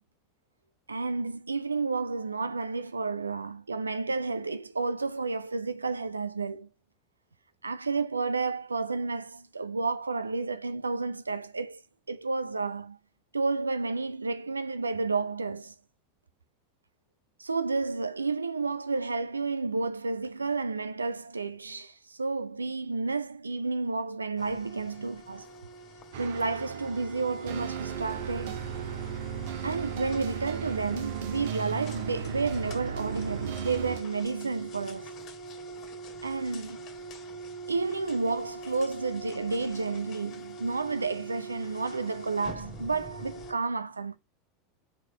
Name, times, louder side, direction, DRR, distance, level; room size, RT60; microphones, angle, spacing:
voice 1, 0.9-6.7 7.6-11.8 12.1-13.0 13.3-15.7 17.4-25.5 26.2-28.6 29.6-35.1 36.2-36.9 37.7-44.2, right 4 dB, 80° right, 0.5 m, -31 dB
sound 1, 24.4-43.5, right 3 dB, 40° left, 1.6 m, -44 dB
sound 2, 26.1-34.0, right 8 dB, 60° right, 0.9 m, -36 dB
4.8 x 4.6 x 5.6 m
figure-of-eight pair, 80°, 0 cm